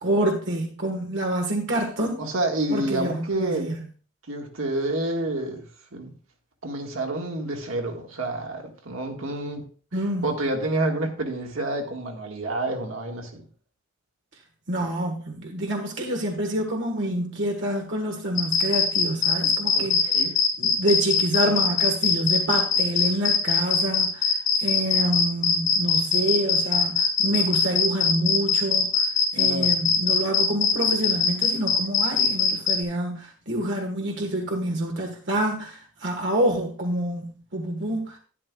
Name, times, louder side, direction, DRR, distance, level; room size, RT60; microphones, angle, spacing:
voice 1, 0.0-2.2 2.7-3.8 9.9-10.3 14.7-20.2 20.6-29.1 29.3-38.2, right 1 dB, 60° right, 1 dB, 1.5 m, -27 dB
voice 2, 2.2-3.7 4.3-5.6 5.9-6.1 6.6-9.6 10.2-13.5 19.7-20.3 29.3-29.7, right 2 dB, 75° right, 2 dB, 1.7 m, -28 dB
sound 1, 18.4-32.8, left 6 dB, 40° left, 3.5 m, -21 dB
12.0 x 11.0 x 2.3 m, 0.40 s
head